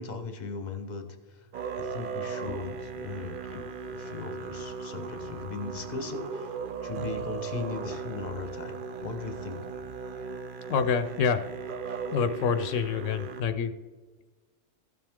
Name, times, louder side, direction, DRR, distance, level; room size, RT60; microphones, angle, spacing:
voice 1, 0.0-1.5 1.8-6.6 6.8-9.6, left 4 dB, 40° left, 7 dB, 0.9 m, -38 dB
Musical instrument, 1.5-13.4, right 5 dB, 50° right, 0.7 m, -37 dB
voice 2, 10.7-11.4 12.1-13.7, left 6 dB, 75° left, 9 dB, 0.9 m, -27 dB
14.5 x 7.6 x 3.6 m, 1.3 s
omnidirectional pair, 1.3 m